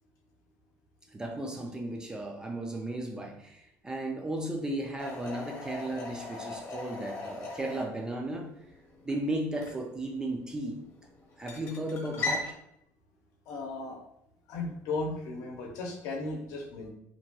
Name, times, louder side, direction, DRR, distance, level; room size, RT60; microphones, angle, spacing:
voice 1, 1.1-8.5 9.1-10.8 11.4-12.5, right 1 dB, 10° right, 2 dB, 0.3 m, -35 dB
sound 1, 5.0-12.5, left 3 dB, 45° left, 0.9 m, -40 dB
voice 2, 13.5-14.0 14.5-16.9, left 3 dB, 70° left, 1 dB, 0.7 m, -36 dB
2.8 x 2.2 x 2.8 m, 0.77 s
cardioid pair, 150°, 6 cm